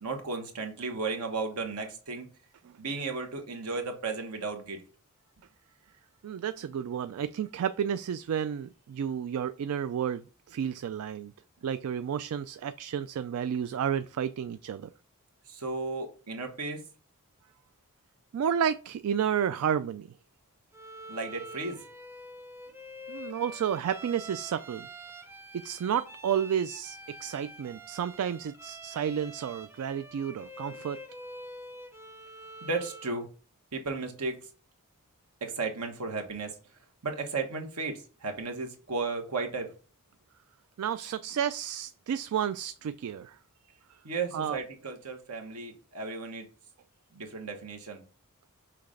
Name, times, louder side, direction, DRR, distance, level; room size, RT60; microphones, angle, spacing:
voice 1, 0.0-2.3 2.8-4.8 15.5-16.8 21.1-21.8 32.6-33.3 33.7-34.4 35.4-36.5 37.0-39.7 44.0-46.5 47.1-48.0, right 3 dB, 85° right, 1.3 m, -34 dB
voice 2, 6.2-11.3 11.6-14.9 18.3-20.1 23.1-24.9 25.6-31.0 40.8-43.4 44.3-44.6, right 8 dB, 70° right, 0.3 m, -31 dB
Bowed string instrument, 20.7-33.2, right 1 dB, 10° right, 0.7 m, -46 dB
5.8 x 3.2 x 5.0 m
head